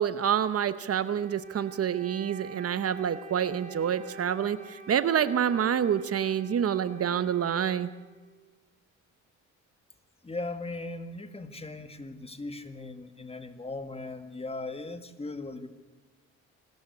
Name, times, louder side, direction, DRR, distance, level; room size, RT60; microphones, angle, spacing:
voice 1, 0.0-7.9, right 9 dB, 50° right, 14 dB, 0.9 m, -27 dB
Wind instrument woodwind instrument, 1.0-8.5, right 2 dB, 25° right, 2.4 m, -46 dB
voice 2, 10.2-15.7, left 2 dB, 20° left, 9 dB, 1.9 m, -38 dB
26.5 x 13.0 x 8.4 m, 1.2 s
cardioid pair, 90°, 30 cm